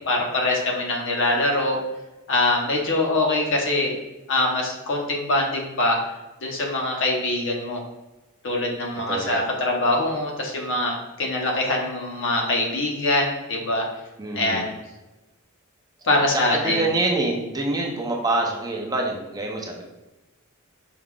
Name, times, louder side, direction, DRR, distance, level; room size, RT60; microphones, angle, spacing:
voice 1, 0.0-1.8 2.3-4.0 4.3-6.0 6.4-7.8 8.4-13.8 14.3-14.7 16.0-16.9, left 2 dB, 60° left, 0 dB, 0.9 m, -23 dB
voice 2, 9.1-9.4 14.2-14.7 16.3-19.8, right 2 dB, 15° right, 0 dB, 0.5 m, -26 dB
4.6 x 2.3 x 3.7 m, 1.1 s
head